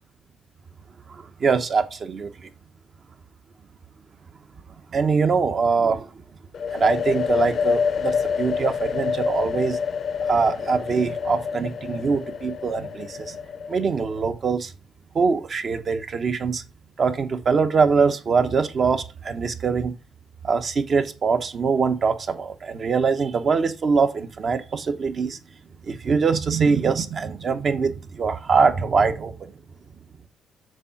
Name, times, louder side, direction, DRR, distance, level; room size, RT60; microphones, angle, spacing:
voice 1, 1.1-2.3 4.9-6.1 6.7-9.8 10.3-13.4 13.7-14.7 15.1-16.6 17.0-19.9 20.4-25.4 25.9-29.5, right 5 dB, 45° right, 1.0 m, -23 dB
sound 1, 6.5-14.2, left 6 dB, 55° left, 0.5 m, -27 dB
6.8 x 3.8 x 5.8 m
cardioid pair, 90°, 0 cm